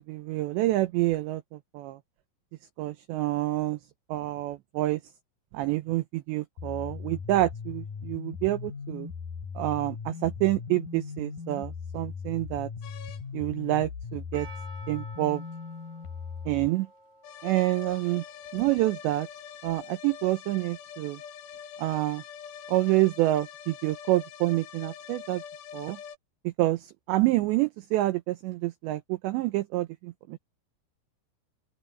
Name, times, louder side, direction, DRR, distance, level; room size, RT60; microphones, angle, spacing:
voice 1, 0.0-2.0 2.8-3.8 4.1-5.0 5.5-9.1 9.6-12.7 13.3-14.5 14.9-15.4 16.5-16.9 17.4-18.2 18.5-19.3 19.6-21.2 21.8-22.2 22.7-25.4 25.7-26.0 26.4-30.4, right 17 dB, 80° right, 2.5 m, -27 dB
sound 1, 6.6-16.7, left 5 dB, 45° left, 4.6 m, -39 dB
sound 2, 12.8-13.2 17.2-26.2, left 8 dB, 65° left, 3.3 m, -44 dB
Percussion, 14.3-19.3, right 1 dB, 45° right, 5.5 m, -51 dB
open air
omnidirectional pair, 6.0 m